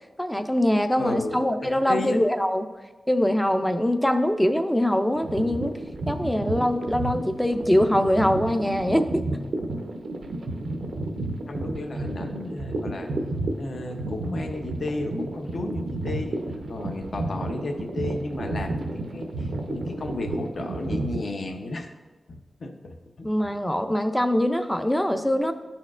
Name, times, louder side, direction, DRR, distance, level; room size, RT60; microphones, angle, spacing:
voice 1, 0.2-2.7 3.1-5.8 6.1-9.3 23.2-25.5, equal, 5° left, 8 dB, 0.4 m, -23 dB
voice 2, 1.0-1.6 1.9-2.2 6.3-6.6 11.5-13.1 13.6-16.4 16.7-21.9 22.3-23.3, left 2 dB, 60° left, 4 dB, 0.7 m, -33 dB
sound 1, 5.2-21.3, right 2 dB, 90° right, 0.6 m, -31 dB
12.5 x 4.3 x 2.4 m, 1.3 s
wide cardioid pair, 130°, 0 cm